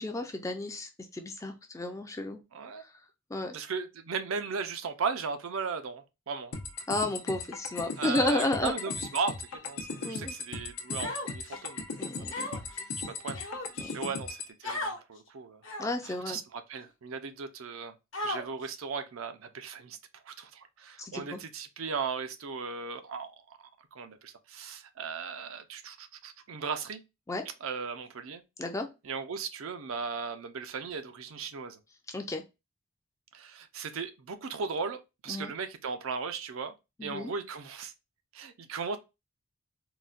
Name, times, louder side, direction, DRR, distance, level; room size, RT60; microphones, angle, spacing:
voice 1, 0.0-2.4 3.3-3.5 6.9-8.7 10.0-10.3 12.0-12.5 13.8-14.1 15.8-16.4 21.0-21.4 27.3-27.4 28.6-28.9 32.1-32.4 35.3-35.5 37.0-37.3, left 2 dB, 15° left, 0.4 m, -32 dB
voice 2, 2.5-2.8 3.5-6.5 8.0-12.1 13.1-13.4 13.9-15.6 16.0-17.9 18.2-20.0 20.3-23.6 23.9-27.0 27.6-28.4 29.0-31.8 33.3-36.7 37.0-37.9 38.3-39.0, right 5 dB, 70° right, 0.5 m, -37 dB
sound 1, 6.5-14.5, left 4 dB, 85° left, 0.7 m, -38 dB
Human voice, 11.0-11.6 12.3-12.8 13.3-13.9 14.6-15.0 15.6-16.1 16.8-16.9 18.1-18.7, left 1 dB, 60° left, 0.9 m, -36 dB
3.8 x 2.1 x 2.4 m
head